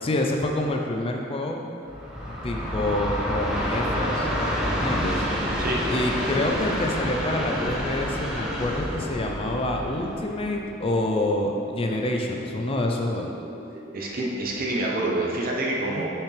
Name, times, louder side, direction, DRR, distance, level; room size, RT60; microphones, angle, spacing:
voice 1, 0.0-1.6 2.3-4.3 4.6-5.2 5.9-13.3 15.9-16.1, left 1 dB, 30° left, 1 dB, 0.4 m, -27 dB
Train, 1.9-11.1, equal, 5° right, 0.9 m, -28 dB
sound 1, 3.3-14.1, equal, 75° left, 1.3 m, -43 dB
voice 2, 13.9-16.1, right 2 dB, 50° right, -2 dB, 0.8 m, -27 dB
6.7 x 5.8 x 3.2 m, 2.8 s
head